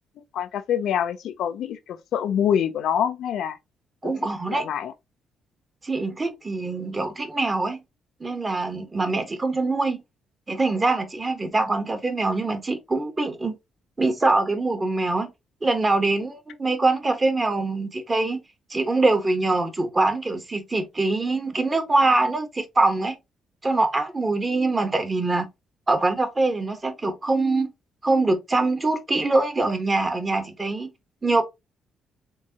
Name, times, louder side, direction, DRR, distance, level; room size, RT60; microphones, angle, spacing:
voice 1, 0.3-3.6 4.0-4.1 4.5-4.9, left 9 dB, 75° left, 0.6 m, -25 dB
voice 2, 4.0-4.7 5.8-7.8 8.2-10.0 10.5-13.6 14.0-15.3 15.6-18.4 18.7-23.2 23.6-25.5 25.9-27.7 28.0-30.9 31.2-31.4, right 2 dB, 25° right, 1.4 m, -23 dB
4.5 x 3.6 x 2.9 m
cardioid pair, 90°, 0 cm